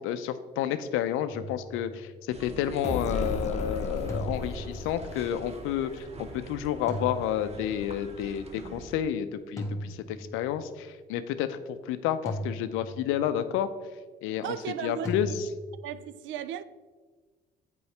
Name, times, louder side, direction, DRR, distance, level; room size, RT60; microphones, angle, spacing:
voice 1, 0.0-11.6 11.9-13.7 14.2-14.5 14.8-15.3, left 10 dB, 75° left, 0.5 m, -30 dB
sound 1, 1.3-2.3 4.1-5.2 6.9-8.0 9.6-10.7 12.2-13.4 15.0-15.9, equal, 15° left, 1.7 m, -39 dB
sound 2, 2.3-9.0, right 3 dB, 30° right, 0.9 m, -46 dB
sound 3, 2.8-6.5, left 2 dB, 35° left, 0.8 m, -35 dB
voice 2, 14.4-15.4 15.8-16.6, right 10 dB, 65° right, 0.4 m, -36 dB
8.0 x 4.6 x 3.3 m
hypercardioid pair, 60°, 21 cm